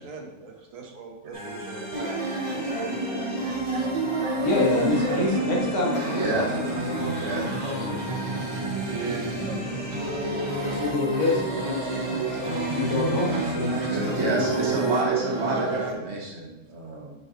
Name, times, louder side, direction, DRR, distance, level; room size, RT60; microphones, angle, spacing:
voice 1, 0.0-2.1 8.8-9.8 15.4-16.0, right 4 dB, 85° right, 2 dB, 1.3 m, -38 dB
sound 1, 1.3-15.0, left 1 dB, 5° right, 1.9 m, -36 dB
sound 2, 1.9-15.9, right 3 dB, 40° right, 0.4 m, -29 dB
voice 2, 4.4-8.4 10.6-13.3 13.5-14.5, left 2 dB, 70° left, -2 dB, 1.6 m, -28 dB
voice 3, 6.1-6.4 7.1-7.5 13.1-13.4 13.9-17.1, right 2 dB, 55° right, -2 dB, 1.5 m, -29 dB
6.4 x 5.2 x 2.8 m, 1.0 s
omnidirectional pair, 1.3 m